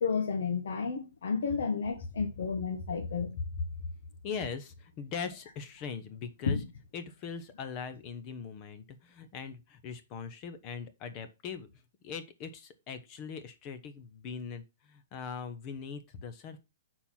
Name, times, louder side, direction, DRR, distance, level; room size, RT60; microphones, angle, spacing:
voice 1, 0.0-3.3 6.5-6.7, left 5 dB, 75° left, 1.4 m, -31 dB
voice 2, 4.2-6.6 6.9-16.6, left 6 dB, 30° left, 1.0 m, -41 dB
6.6 x 4.4 x 5.7 m
hypercardioid pair, 165°, 0 cm